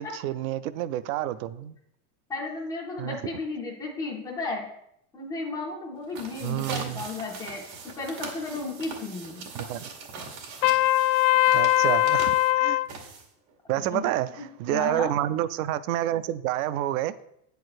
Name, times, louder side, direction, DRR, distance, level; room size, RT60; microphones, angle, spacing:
voice 1, 0.0-1.8 3.0-3.2 6.4-7.0 9.5-9.8 11.5-12.8 13.7-17.2, right 13 dB, 65° right, 0.5 m, -29 dB
voice 2, 2.3-4.7 5.1-7.6 8.0-9.4 13.7-14.1 14.4-14.5 14.7-15.1, left 3 dB, 5° left, 0.3 m, -34 dB
sound 1, 6.0-13.5, right 4 dB, 90° right, 2.3 m, -41 dB
Trumpet, 10.6-12.9, left 16 dB, 85° left, 0.6 m, -21 dB
8.6 x 4.6 x 6.4 m
cardioid pair, 180°, 49 cm